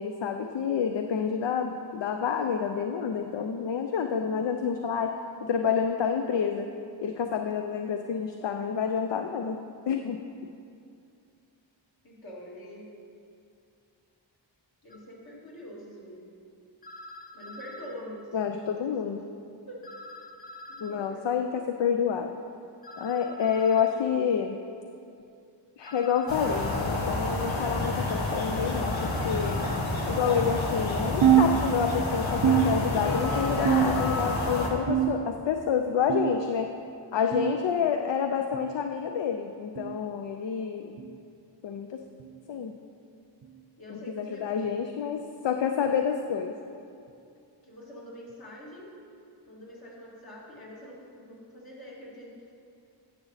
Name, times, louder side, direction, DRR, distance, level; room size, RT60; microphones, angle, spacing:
voice 1, 0.0-5.2 5.4-6.7 7.0-9.6 9.9-10.2 18.3-19.2 20.8-22.3 23.0-24.6 25.8-29.7 30.0-36.7 37.1-40.9 41.6-42.0 42.5-42.7 43.9-46.5, left 7 dB, 70° left, 5 dB, 0.5 m, -28 dB
voice 2, 12.0-12.9 14.8-16.2 17.3-18.4 19.0-19.2 19.7-19.8 20.7-21.5 43.8-44.7 47.6-48.9 49.5-52.5, equal, 50° left, -5 dB, 2.3 m, -45 dB
sound 1, 14.9-15.0 16.8-18.0 19.8-21.0 22.8-24.0 25.8-27.0 28.8-29.8, left 2 dB, 20° left, 0.6 m, -45 dB
sound 2, 26.3-34.7, left 2 dB, 90° left, 1.2 m, -29 dB
sound 3, 31.2-32.1 32.4-33.2 33.7-34.3 34.9-35.5 36.1-36.5 37.3-37.6 38.5-38.8 39.8-40.0 41.0-41.2 42.2-42.4 43.4-43.6 44.6-44.7 45.9-46.0, right 9 dB, 60° right, 0.6 m, -25 dB
10.0 x 7.1 x 4.1 m, 2.5 s
wide cardioid pair, 90°, 45 cm